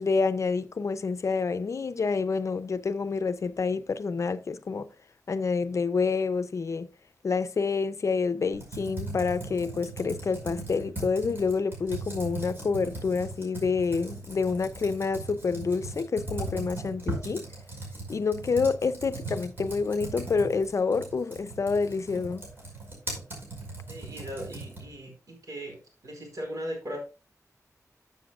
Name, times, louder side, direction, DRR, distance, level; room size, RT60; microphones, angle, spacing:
voice 1, 0.0-4.9 5.3-6.9 7.2-17.5 18.1-22.4, left 4 dB, 55° left, 0.5 m, -28 dB
Computer keyboard, 8.5-25.0, right 2 dB, 40° right, 5.3 m, -39 dB
voice 2, 23.9-25.8 26.0-27.0, equal, 75° right, 4.7 m, -38 dB
14.0 x 7.1 x 2.4 m
wide cardioid pair, 135°, 6 cm